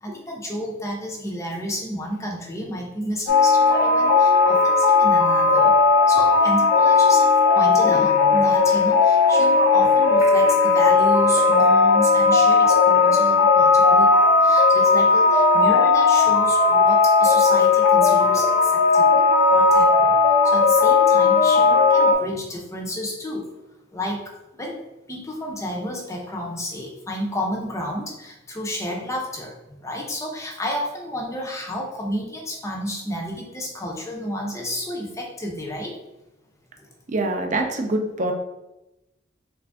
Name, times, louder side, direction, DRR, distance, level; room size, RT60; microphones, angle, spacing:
voice 1, 0.0-5.7 6.1-7.3 7.5-20.1 20.4-23.5 23.9-24.3 24.6-24.8 25.1-29.5 29.8-36.0 36.8-36.9, equal, 15° left, -1 dB, 0.6 m, -31 dB
sound 1, 3.3-22.1, left 4 dB, 85° left, 0.8 m, -16 dB
voice 2, 37.1-38.3, right 2 dB, 40° right, 3 dB, 0.4 m, -24 dB
3.3 x 2.5 x 3.4 m, 0.95 s
head